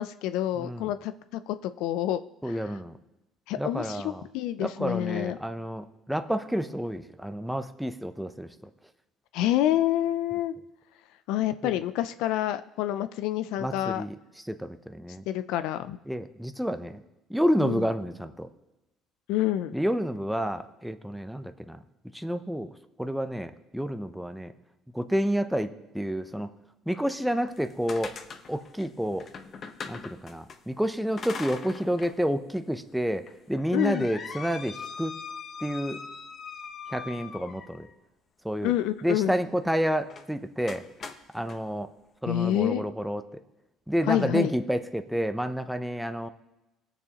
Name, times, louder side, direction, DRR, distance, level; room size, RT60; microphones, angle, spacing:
voice 1, 0.0-2.2 2.4-2.8 3.5-5.4 9.3-10.5 11.3-14.0 15.3-16.0 17.6-17.8 19.3-19.7 33.7-34.1 38.6-39.4 42.3-42.8 44.1-44.5, left 12 dB, 80° left, 11 dB, 0.4 m, -28 dB
voice 2, 0.6-0.9 2.4-2.9 3.6-4.2 4.6-8.5 11.6-11.7 13.6-14.1 14.5-15.2 16.1-17.0 17.3-18.5 19.7-21.8 22.1-22.7 23.0-24.5 24.9-26.5 26.9-28.1 28.5-29.3 29.9-33.2 33.5-35.1 35.6-36.0 36.9-37.9 38.4-38.7 39.0-40.8 41.3-41.9 42.2-43.2 43.9-46.3, equal, ahead, 8 dB, 0.6 m, -29 dB
sound 1, 27.5-30.6 31.2-32.2 32.5-32.6 33.3-37.9 40.1-40.3 40.7-41.6, left 5 dB, 45° left, 0.9 m, -41 dB
19.0 x 6.9 x 2.9 m, 0.96 s
supercardioid pair, 95°, 0 cm